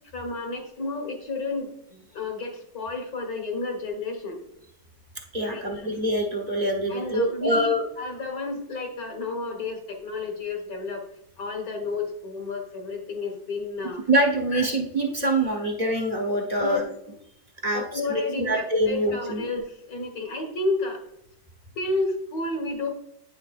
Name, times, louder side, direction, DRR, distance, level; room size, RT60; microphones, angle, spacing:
voice 1, 0.1-4.4 5.4-5.9 6.9-11.1 11.4-14.1 14.5-14.7 16.6-16.9 17.7-21.0 21.8-22.9, left 3 dB, 55° left, 3 dB, 1.7 m, -31 dB
voice 2, 5.3-7.8 14.1-16.9 17.6-19.4, right 1 dB, 30° right, 0 dB, 0.8 m, -25 dB
9.2 x 6.5 x 2.5 m, 0.77 s
omnidirectional pair, 2.1 m